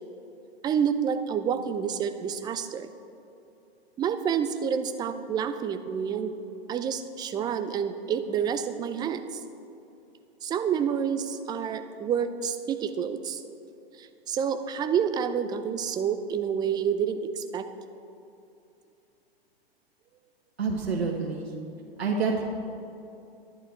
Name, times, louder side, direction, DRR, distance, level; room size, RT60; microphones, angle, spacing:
voice 1, 0.6-2.9 4.0-6.3 6.7-9.4 10.4-13.4 14.0-17.7, right 7 dB, 15° right, 10 dB, 0.4 m, -28 dB
voice 2, 20.6-21.5 22.0-22.4, right 4 dB, 80° right, -1 dB, 1.4 m, -27 dB
11.0 x 11.0 x 4.5 m, 2.7 s
hypercardioid pair, 110°, 31 cm